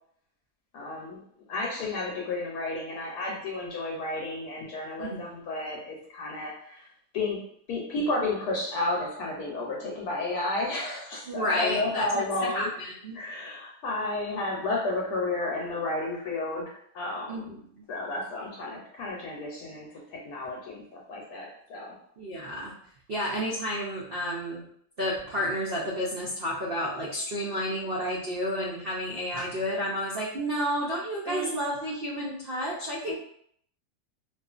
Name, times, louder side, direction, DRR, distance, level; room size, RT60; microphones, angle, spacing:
voice 1, 0.7-1.2 1.5-6.8 7.1-7.4 7.7-12.7 13.1-17.6 17.9-21.9 31.3-31.5 33.1-33.2, left 2 dB, 75° left, -2 dB, 1.1 m, -32 dB
voice 2, 5.0-5.4 11.3-13.2 17.3-17.8 22.2-22.7 23.1-24.6 25.0-33.1, equal, 85° right, -6 dB, 0.5 m, -31 dB
2.6 x 2.4 x 2.3 m, 0.65 s
omnidirectional pair, 1.8 m